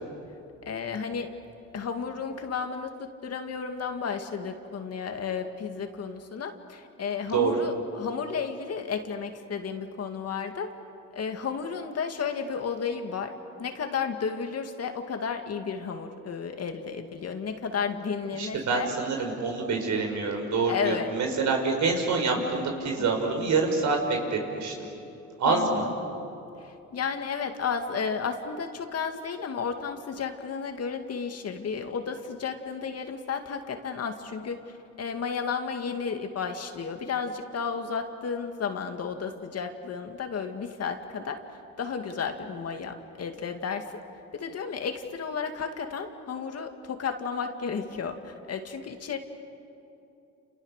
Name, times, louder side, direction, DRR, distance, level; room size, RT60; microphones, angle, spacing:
voice 1, 0.7-1.4 1.7-10.7 11.1-13.3 13.6-18.9 20.7-21.1 22.4-22.5 23.0-23.1 25.4-25.9 26.6-41.4 41.8-44.0 44.3-49.2, left 6 dB, 55° left, 5 dB, 2.3 m, -33 dB
voice 2, 7.3-7.6 18.4-24.9 25.4-25.8, right 4 dB, 70° right, 2 dB, 5.6 m, -26 dB
30.0 x 29.0 x 6.7 m, 2.8 s
cardioid pair, 90°, 30 cm